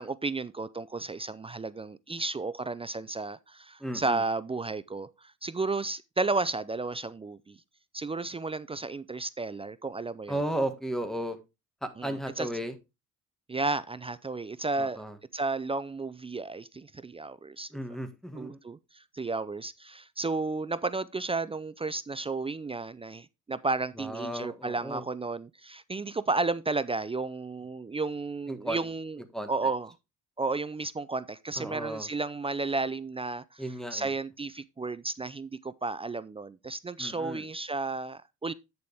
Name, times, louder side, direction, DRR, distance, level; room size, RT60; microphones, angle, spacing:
voice 1, 0.0-7.6 7.9-10.4 12.0-12.5 13.5-15.0 15.3-17.7 18.4-29.2 29.5-29.9 30.4-33.6 33.9-38.5, right 3 dB, 20° right, 0.4 m, -33 dB
voice 2, 3.8-4.2 10.3-11.4 11.8-12.8 14.8-15.2 17.7-18.6 24.0-25.1 28.5-28.8 29.3-29.5 31.6-32.1 33.6-34.1 37.0-37.5, right 1 dB, ahead, 1.7 m, -34 dB
9.3 x 6.9 x 3.5 m
cardioid pair, 90°, 30 cm